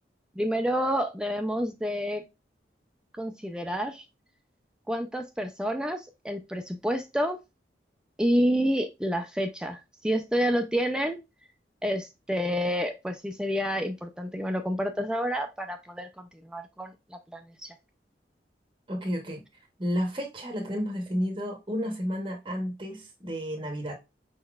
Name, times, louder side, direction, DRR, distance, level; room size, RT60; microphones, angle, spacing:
voice 1, 0.4-2.2 3.2-4.0 4.9-7.4 8.2-11.2 11.8-17.7, equal, 5° right, 0.3 m, -29 dB
voice 2, 18.9-23.9, equal, 25° right, 0.7 m, -32 dB
5.2 x 3.8 x 2.3 m
head